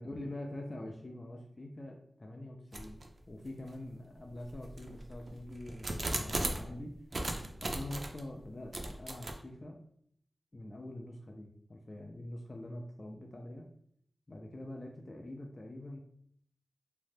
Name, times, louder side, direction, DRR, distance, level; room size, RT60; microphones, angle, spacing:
voice 1, 0.0-7.0 7.6-9.8 10.5-13.7 14.3-16.0, left 1 dB, 40° left, 1 dB, 0.3 m, -45 dB
sound 1, 2.7-3.1 3.7-3.8 4.5-6.7 7.1-8.2 8.7-9.3, right 2 dB, 55° right, 0.4 m, -37 dB
2.6 x 2.1 x 3.2 m, 0.67 s
wide cardioid pair, 65°, 0 cm